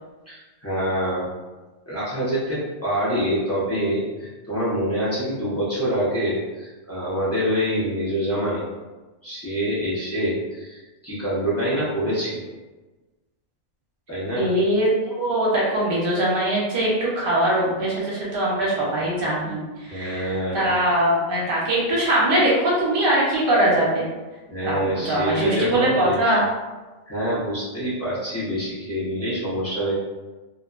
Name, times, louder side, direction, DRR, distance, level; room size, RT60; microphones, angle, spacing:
voice 1, 0.3-1.3 1.9-8.6 9.2-12.4 14.1-14.5 19.9-20.7 24.5-26.4 27.1-29.9, equal, 20° left, -10 dB, 0.5 m, -26 dB
voice 2, 14.4-24.1 24.6-26.4, right 1 dB, 50° right, -5 dB, 0.8 m, -22 dB
2.6 x 2.1 x 2.3 m, 1.2 s
omnidirectional pair, 1.3 m